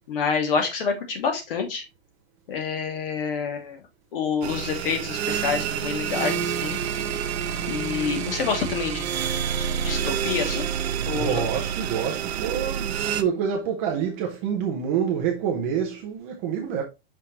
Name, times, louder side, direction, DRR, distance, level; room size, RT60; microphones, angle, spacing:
voice 1, 0.1-1.8 2.5-3.8 4.1-6.8 7.7-9.1 9.8-10.7 11.1-11.5, left 6 dB, 60° left, 2.7 m, -27 dB
sound 1, 4.4-13.2, right 8 dB, 80° right, 1.0 m, -28 dB
voice 2, 11.1-16.8, right 7 dB, 15° right, 0.4 m, -27 dB
5.8 x 5.6 x 3.1 m
supercardioid pair, 170°, 32 cm